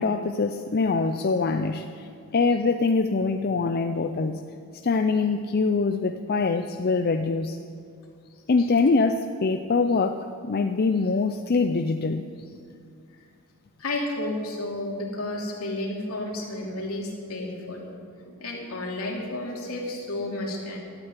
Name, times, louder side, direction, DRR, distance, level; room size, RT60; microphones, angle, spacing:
voice 1, 0.0-4.4 4.8-7.6 8.5-12.2, left 4 dB, 45° left, 7 dB, 0.5 m, -24 dB
voice 2, 13.8-17.9 18.2-20.8, left 1 dB, 75° left, -1 dB, 2.9 m, -32 dB
13.0 x 8.8 x 9.8 m, 2.3 s
head